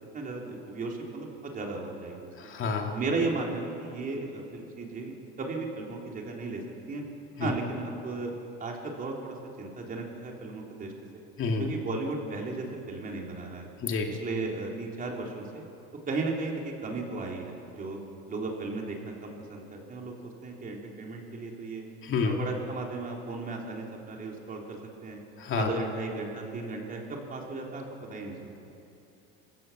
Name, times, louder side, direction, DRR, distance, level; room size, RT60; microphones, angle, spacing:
voice 1, 0.1-2.3 2.9-6.6 6.9-7.0 7.4-8.3 8.6-11.2 11.6-13.7 14.1-15.7 16.1-18.0 18.3-21.8 22.2-25.2 25.5-28.5, right 3 dB, 25° right, 0 dB, 3.7 m, -35 dB
voice 2, 2.4-2.9 7.4-7.5 11.4-11.6 13.8-14.1 22.0-22.4 25.4-25.7, left 4 dB, 40° left, 2 dB, 2.7 m, -29 dB
25.5 x 16.0 x 7.5 m, 2.7 s
cardioid pair, 140°, 31 cm